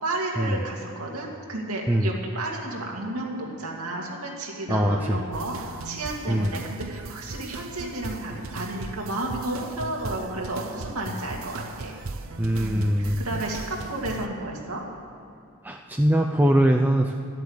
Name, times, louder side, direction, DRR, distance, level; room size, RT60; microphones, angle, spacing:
voice 1, 0.0-11.9 12.6-14.8, right 2 dB, 90° right, -1 dB, 2.3 m, -32 dB
voice 2, 4.7-5.2 6.3-6.5 12.4-13.2 15.6-17.1, equal, 10° right, 1 dB, 0.4 m, -22 dB
sound 1, 5.3-14.3, right 3 dB, 65° right, 0.6 m, -38 dB
12.5 x 8.3 x 8.1 m, 2.6 s
head